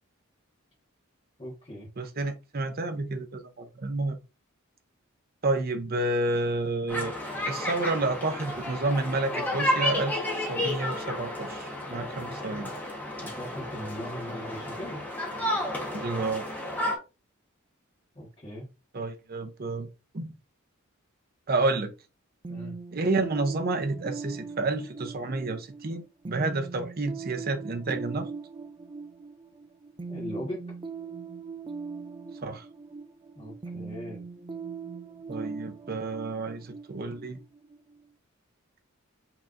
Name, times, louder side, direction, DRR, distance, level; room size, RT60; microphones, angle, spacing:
voice 1, 1.4-1.9 13.2-15.0 18.1-18.7 22.5-22.7 30.1-30.6 33.3-34.2, equal, 25° left, 1.5 m, -38 dB
voice 2, 2.0-4.2 5.4-7.1 7.5-12.7 15.9-16.5 18.9-19.9 20.1-20.4 21.5-21.9 22.9-28.3 32.4-32.7 35.3-37.4, right 2 dB, 45° right, 0.7 m, -30 dB
sound 1, 6.9-17.0, left 1 dB, 10° left, 1.2 m, -32 dB
sound 2, 22.4-38.0, right 4 dB, 25° right, 0.3 m, -41 dB
5.8 x 3.4 x 2.5 m
head